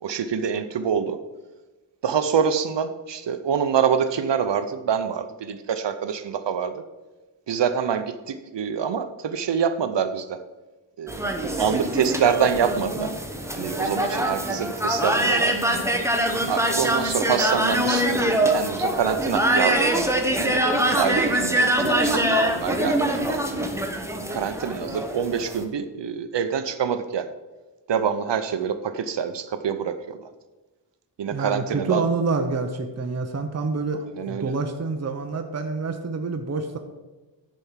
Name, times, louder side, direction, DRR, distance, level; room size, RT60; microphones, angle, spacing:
voice 1, 0.0-1.2 2.0-6.8 7.5-10.4 11.0-13.1 13.5-15.6 16.5-20.0 20.9-23.7 24.3-27.3 27.9-30.2 31.2-32.0 34.1-34.6, right 7 dB, 70° right, 10 dB, 0.7 m, -26 dB
sound 1, 11.1-25.6, right 1 dB, 5° right, 0.9 m, -24 dB
voice 2, 31.3-36.8, right 4 dB, 35° right, 6 dB, 0.8 m, -27 dB
10.5 x 4.6 x 5.7 m, 1.2 s
wide cardioid pair, 100°, 45 cm